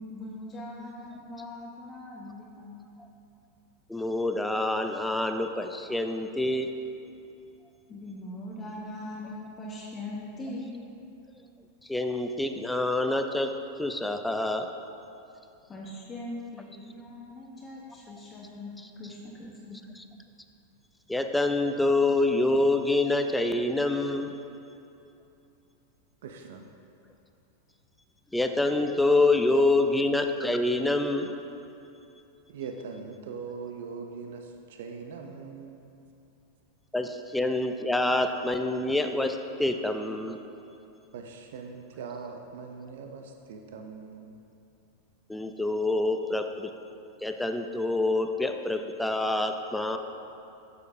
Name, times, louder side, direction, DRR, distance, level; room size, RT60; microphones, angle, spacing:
voice 1, 0.1-2.9 7.9-10.8 15.7-19.9, left 1 dB, 25° left, -4 dB, 0.9 m, -41 dB
voice 2, 3.9-6.7 11.9-13.5 13.8-14.7 21.1-24.3 28.3-31.3 36.9-40.4 45.3-46.7 47.2-50.0, left 2 dB, 5° left, 6 dB, 0.4 m, -26 dB
voice 3, 26.2-26.6 32.5-35.9 41.1-44.4, right 5 dB, 70° right, 4 dB, 0.5 m, -41 dB
8.2 x 6.6 x 2.7 m, 2.8 s
hypercardioid pair, 100°, 0 cm